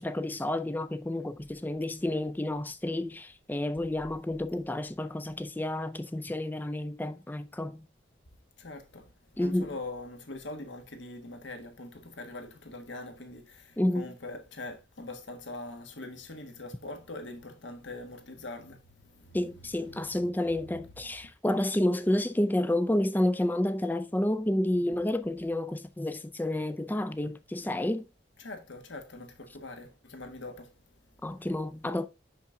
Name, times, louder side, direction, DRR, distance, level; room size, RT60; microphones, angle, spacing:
voice 1, 0.0-7.9 9.4-9.7 13.8-14.1 19.3-28.0 31.2-32.1, left 1 dB, 10° left, 0.4 m, -30 dB
voice 2, 8.6-20.1 21.0-21.1 28.4-30.8, left 2 dB, 75° left, 1.3 m, -43 dB
5.7 x 5.7 x 3.7 m
head